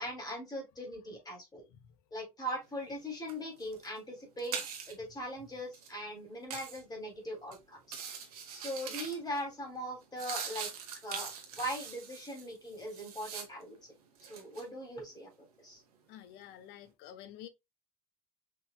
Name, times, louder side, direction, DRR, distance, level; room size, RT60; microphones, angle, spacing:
voice 1, 0.0-1.6 2.1-8.0 8.5-10.7 11.0-13.8 14.3-15.3 15.6-15.8, equal, 20° left, 2.4 m, -40 dB
sound 1, 2.7-3.0 3.3-5.1 5.6-5.9 6.5-6.8 7.4-7.6 7.8-9.4 9.8-13.8 14.1-14.7, right 7 dB, 75° right, 0.9 m, -42 dB
voice 2, 7.9-8.4 16.1-17.5, left 11 dB, 60° left, 0.7 m, -51 dB
5.5 x 3.1 x 2.2 m
figure-of-eight pair, 60°, 19 cm